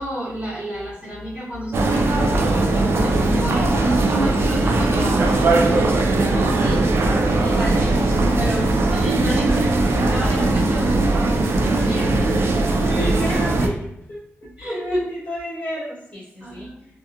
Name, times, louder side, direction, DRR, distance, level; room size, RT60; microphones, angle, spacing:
voice 1, 0.0-5.7 8.3-11.1 11.6-12.2 14.6-15.1 16.4-16.9, right 1 dB, 30° right, -12 dB, 1.3 m, -30 dB
sound 1, 1.7-13.7, right 2 dB, 60° right, 0.4 m, -19 dB
voice 2, 6.4-6.9 7.4-8.1 12.8-16.7, equal, 30° left, -10 dB, 1.1 m, -32 dB
2.8 x 2.4 x 2.3 m, 0.83 s
wide cardioid pair, 150°, 5 cm